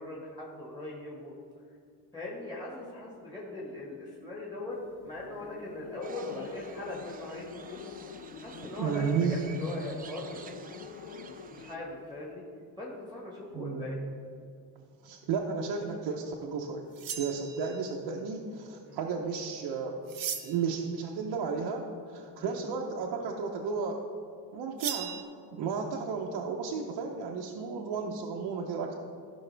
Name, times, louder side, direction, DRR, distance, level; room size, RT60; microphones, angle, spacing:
voice 1, 0.0-1.3 2.1-7.8 8.4-10.4 11.2-12.4 12.8-14.0 18.8-19.0 22.4-22.6, left 2 dB, 10° left, -6 dB, 1.6 m, -40 dB
sound 1, 4.7-12.3, left 7 dB, 50° left, 0.5 m, -47 dB
sound 2, 6.0-11.8, right 6 dB, 25° right, 0.3 m, -50 dB
voice 2, 8.8-9.5 13.5-13.9 15.0-16.8 17.2-20.0 20.4-24.0 24.5-25.1 25.5-28.9, right 5 dB, 80° right, 0 dB, 0.9 m, -33 dB
sound 3, 16.9-17.9 20.1-20.7 24.8-25.2, right 9 dB, 55° right, 0.9 m, -37 dB
16.0 x 5.6 x 3.4 m, 2.5 s
cardioid pair, 160°, 40 cm